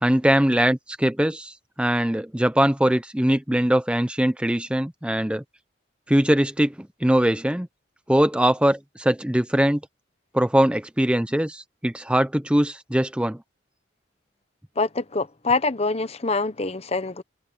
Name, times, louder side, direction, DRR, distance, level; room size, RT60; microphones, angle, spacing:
voice 1, 0.0-5.4 6.1-7.7 8.1-9.8 10.3-13.4, right 1 dB, 5° right, 0.6 m, -21 dB
voice 2, 14.8-17.2, left 3 dB, 35° left, 0.9 m, -25 dB
head